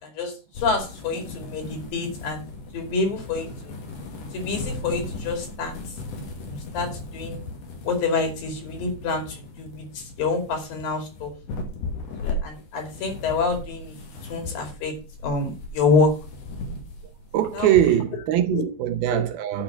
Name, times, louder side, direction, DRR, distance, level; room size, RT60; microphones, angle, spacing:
voice 1, 0.0-2.5 2.7-3.7 4.3-5.7 6.5-7.4 7.8-11.3 12.2-14.0 14.3-14.9 15.2-16.1 17.5-17.7 18.5-18.6 19.1-19.2, left 4 dB, 60° left, 4.1 m, -27 dB
sound 1, 0.5-17.6, left 2 dB, 90° left, 4.5 m, -37 dB
voice 2, 17.3-19.6, right 11 dB, 75° right, 2.6 m, -22 dB
9.9 x 6.0 x 6.4 m
omnidirectional pair, 4.6 m